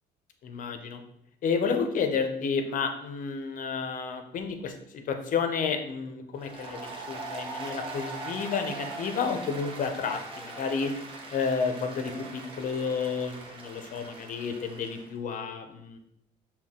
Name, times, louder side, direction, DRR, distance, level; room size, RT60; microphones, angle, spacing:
voice 1, 0.4-1.0 1.4-10.9 11.3-16.0, left 5 dB, 50° left, 6 dB, 0.7 m, -31 dB
Applause, 6.4-15.1, right 2 dB, 30° right, 1.0 m, -41 dB
5.6 x 2.3 x 3.6 m, 0.77 s
cardioid pair, 110°, 17 cm